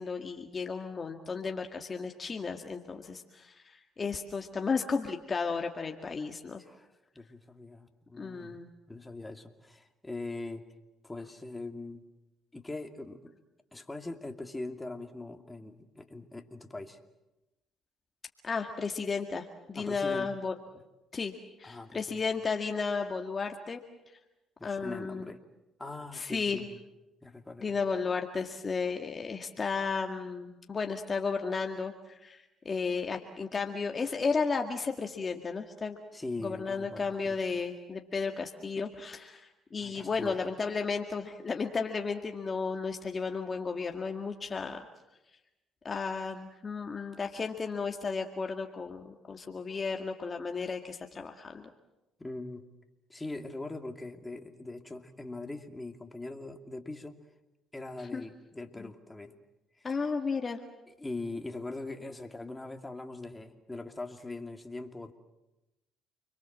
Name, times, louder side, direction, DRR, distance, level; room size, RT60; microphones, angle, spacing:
voice 1, 0.0-6.6 8.2-8.7 18.4-20.5 21.1-21.3 21.6-23.8 24.6-25.3 26.1-26.7 27.6-36.0 36.4-44.8 45.8-51.7 58.1-58.2 58.8-58.9 59.8-60.6, left 5 dB, 35° left, 4 dB, 1.9 m, -33 dB
voice 2, 7.1-8.6 8.9-10.6 11.0-12.0 12.5-13.3 13.7-17.0 19.8-20.3 21.6-22.2 24.6-25.4 25.8-26.8 27.2-27.7 36.1-37.4 39.8-40.5 52.2-52.6 53.1-57.2 57.7-59.4 59.8-59.9 61.0-65.1, left 2 dB, 15° left, 5 dB, 2.6 m, -41 dB
29.5 x 22.5 x 7.5 m, 0.98 s
supercardioid pair, 70°, 0 cm